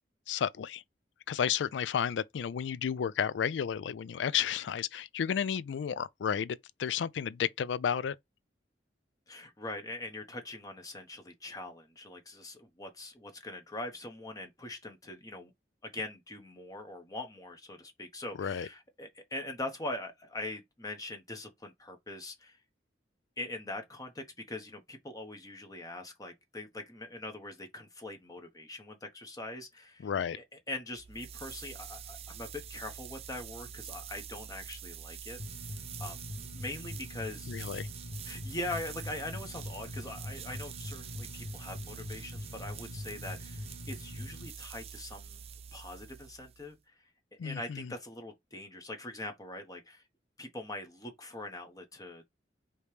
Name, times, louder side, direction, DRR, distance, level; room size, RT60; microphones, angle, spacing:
voice 1, 0.3-0.8 1.3-8.2 18.4-18.7 30.0-30.4 37.5-37.9 47.4-47.9, left 8 dB, 80° left, 0.4 m, -32 dB
voice 2, 9.3-15.5 15.8-22.6 23.4-30.1 30.4-35.4 36.0-37.5 38.2-45.4 45.7-47.0 47.4-50.0 50.4-52.2, left 2 dB, 20° left, 0.8 m, -42 dB
sound 1, 30.9-46.7, right 8 dB, 35° right, 0.4 m, -46 dB
sound 2, 35.4-44.5, left 1 dB, 50° left, 0.8 m, -43 dB
5.0 x 2.9 x 3.2 m
head